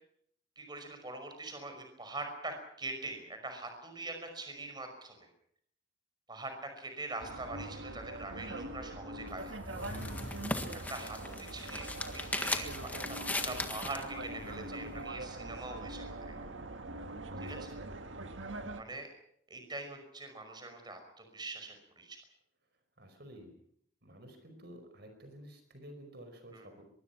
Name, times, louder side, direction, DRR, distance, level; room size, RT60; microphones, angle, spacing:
voice 1, 0.6-5.3 6.3-9.4 9.8-10.0 10.7-11.2 11.5-11.8 12.1-12.7 13.3-16.3 17.4-17.6 18.8-19.1 19.5-22.2 26.5-26.6, right 2 dB, 20° right, 6 dB, 5.5 m, -43 dB
sound 1, 7.2-18.8, right 2 dB, 70° right, 1.8 m, -43 dB
voice 2, 9.1-9.5 10.9-11.5 14.3-15.0 17.3-18.1 23.0-23.5 24.0-26.8, equal, 55° right, 7 dB, 5.0 m, -52 dB
sound 2, 9.3-14.1, left 2 dB, 10° left, 1.6 m, -38 dB
sound 3, 9.6-14.5, left 1 dB, 40° left, 4.3 m, -49 dB
24.0 x 23.0 x 5.9 m, 0.67 s
head